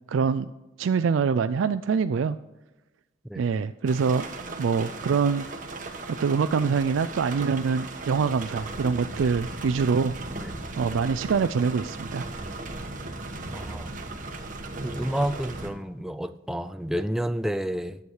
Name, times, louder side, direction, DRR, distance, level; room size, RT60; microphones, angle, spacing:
voice 1, 0.1-0.5 0.8-2.4 3.4-4.3 4.6-5.5 6.1-10.1 10.7-12.2 13.2-13.3, right 5 dB, 80° right, 11 dB, 0.4 m, -24 dB
sound 1, 3.9-15.7, right 2 dB, 40° right, 1.3 m, -37 dB
voice 2, 13.5-13.9 14.8-18.0, equal, ahead, 10 dB, 0.3 m, -30 dB
11.0 x 8.0 x 4.7 m, 1.1 s
head